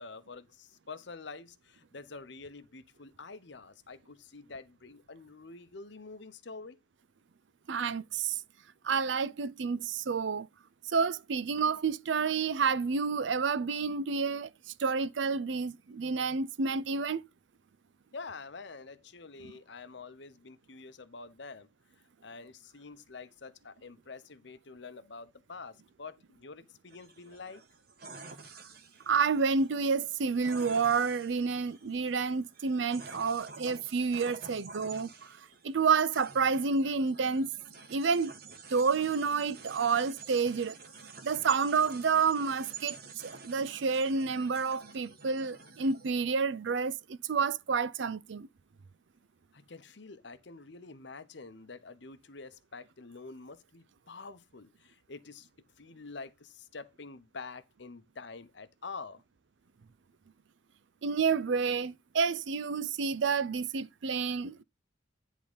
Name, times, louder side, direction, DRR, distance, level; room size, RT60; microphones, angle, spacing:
voice 1, 0.0-6.8 18.1-21.7 22.2-27.6 49.5-55.5 55.8-59.2, left 4 dB, 60° left, 0.9 m, -47 dB
voice 2, 7.7-8.4 8.8-10.5 10.9-14.5 14.8-17.2 19.4-19.5 29.1-35.1 35.6-37.5 37.9-38.3 38.7-40.8 41.2-43.0 43.2-48.5 61.0-64.6, right 5 dB, 65° right, 0.5 m, -29 dB
sound 1, 26.9-46.1, right 5 dB, 50° right, 1.5 m, -49 dB
10.0 x 3.7 x 5.1 m
head